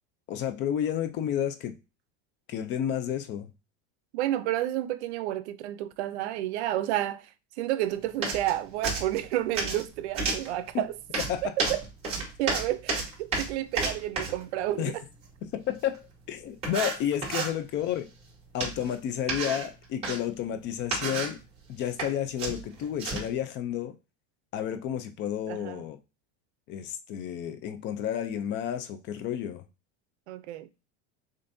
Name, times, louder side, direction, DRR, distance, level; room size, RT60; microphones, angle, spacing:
voice 1, 0.3-1.7 2.5-3.5 11.3-11.4 14.8-14.9 15.5-16.0 16.3-18.1 18.5-21.4 21.7-23.9 24.5-26.0 26.7-29.6, left 10 dB, 35° left, 0.5 m, -31 dB
voice 2, 4.1-7.3 7.6-10.9 11.4-11.8 12.4-15.0 25.5-25.8 30.3-30.7, right 13 dB, 80° right, 0.6 m, -30 dB
sound 1, 8.2-8.6 8.8-9.8 10.1-10.5 11.1-14.4 15.9-16.0 16.6-17.5 18.6-18.9 19.3-20.2 20.8-21.4 21.8-22.1 22.4-23.3, right 3 dB, 20° right, 2.6 m, -31 dB
6.8 x 2.6 x 2.6 m
supercardioid pair, 155°, 33 cm